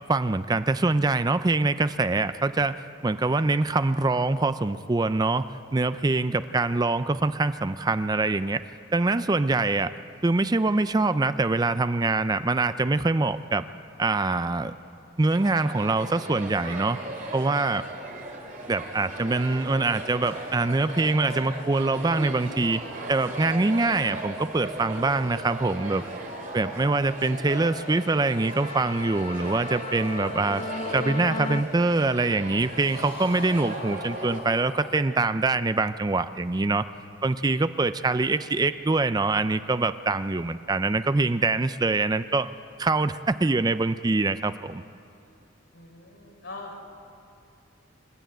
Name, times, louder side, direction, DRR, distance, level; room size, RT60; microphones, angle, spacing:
voice 1, 0.1-2.8 3.0-8.6 8.9-9.9 10.2-13.6 14.0-14.7 15.2-17.0 17.3-17.8 18.7-22.8 23.1-26.0 26.5-30.7 30.9-36.8 37.2-42.5 42.8-44.8, right 3 dB, 20° right, 13 dB, 0.4 m, -24 dB
sound 1, 15.3-34.4, right 2 dB, 45° right, 3.2 m, -38 dB
sound 2, 19.1-19.3 19.6-22.0 22.4-26.2 26.5-26.8 27.2-27.3 27.7-31.6, left 3 dB, 30° left, 0.6 m, -39 dB
sound 3, 26.1-31.6 32.7-35.0, left 2 dB, 55° left, 2.5 m, -44 dB
voice 2, 45.7-46.8, left 2 dB, 80° left, 0 dB, 4.8 m, -42 dB
27.0 x 12.5 x 9.2 m, 2.6 s
head